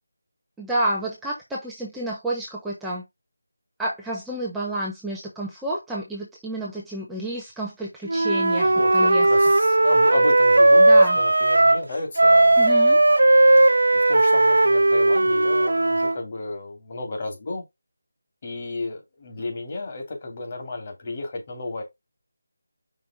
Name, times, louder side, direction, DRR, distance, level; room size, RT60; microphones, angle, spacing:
voice 1, 0.6-3.0 3.8-9.6 10.8-11.2 12.6-13.0, right 1 dB, 5° right, 1.1 m, -30 dB
Wind instrument woodwind instrument, 8.1-11.8 12.2-16.2, right 2 dB, 75° right, 0.6 m, -17 dB
voice 2, 8.2-13.0 13.9-17.6 18.4-21.8, left 2 dB, 35° left, 2.8 m, -33 dB
5.6 x 4.5 x 3.7 m
figure-of-eight pair, 165°, 0 cm